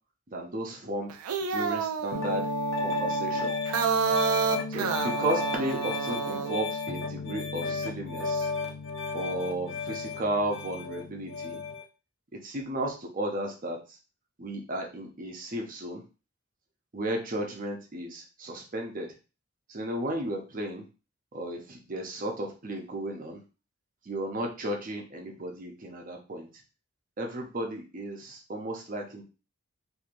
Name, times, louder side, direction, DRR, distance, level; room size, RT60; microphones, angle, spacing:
voice 1, 0.3-1.2 1.5-2.5 2.8-3.6 4.7-8.5 9.1-11.6 12.4-14.0 14.4-16.0 16.9-19.1 19.7-20.8 21.3-23.4 24.0-26.5 27.2-29.2, right 1 dB, 40° right, 2 dB, 0.6 m, -34 dB
sound 1, 1.1-6.6, right 5 dB, 80° right, 0.4 m, -29 dB
Piano, 2.1-11.8, left 3 dB, 60° left, 0.6 m, -34 dB
3.1 x 2.6 x 2.5 m, 0.32 s
head